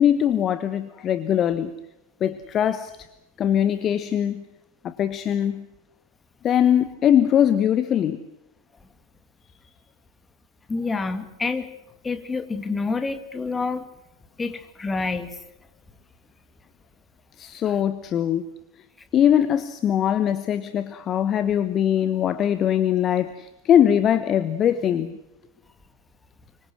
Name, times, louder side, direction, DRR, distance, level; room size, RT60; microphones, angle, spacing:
voice 1, 0.0-1.7 2.2-2.9 3.4-4.4 4.8-5.6 6.4-8.2 17.4-18.4 19.1-25.1, left 9 dB, 30° left, 1.1 m, -21 dB
voice 2, 10.7-11.7 12.0-13.9 14.4-15.3, left 4 dB, 15° left, 2.4 m, -27 dB
26.0 x 23.5 x 6.3 m
figure-of-eight pair, 90°, 0 cm